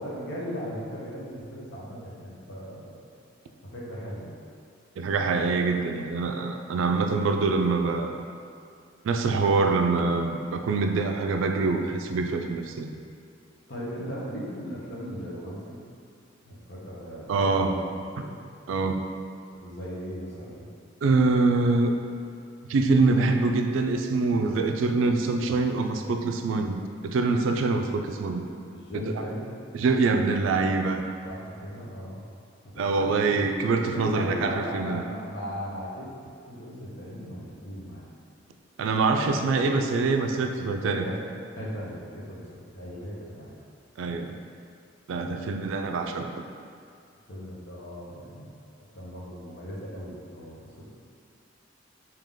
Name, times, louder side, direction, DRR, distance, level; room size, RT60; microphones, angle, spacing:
voice 1, 0.0-3.0 3.6-4.3 13.7-15.8 16.4-18.4 19.6-20.7 28.6-29.4 31.2-32.2 32.6-32.9 33.9-36.1 36.5-38.1 40.8-41.2 41.5-43.6 45.2-45.7 47.3-48.5 48.9-50.8, equal, 65° left, -6 dB, 0.9 m, -38 dB
voice 2, 5.0-8.2 9.0-12.9 17.3-17.8 18.7-19.0 21.0-22.0 22.7-28.4 28.9-29.0 29.7-31.0 32.8-35.0 38.8-41.0 44.0-44.4 45.1-46.4, right 3 dB, 80° right, 5 dB, 0.3 m, -25 dB
3.7 x 2.9 x 3.6 m, 2.3 s
head